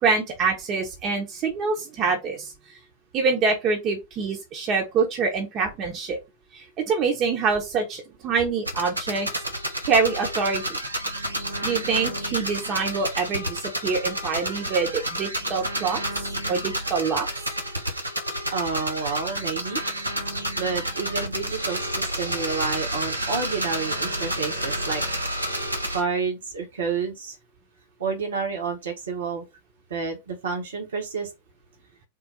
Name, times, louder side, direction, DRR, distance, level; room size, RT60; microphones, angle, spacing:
voice 1, 0.0-2.5 3.1-6.2 6.5-9.3 9.5-10.8 11.6-16.0 16.5-17.3, right 5 dB, 35° right, 0.9 m, -25 dB
sound 1, 8.7-26.0, right 1 dB, 85° right, 0.7 m, -30 dB
voice 2, 18.5-19.8 20.6-25.0 25.9-27.3 28.0-29.4 29.9-31.3, right 5 dB, 65° right, 1.1 m, -29 dB
3.8 x 2.2 x 4.2 m
figure-of-eight pair, 90°, 0 cm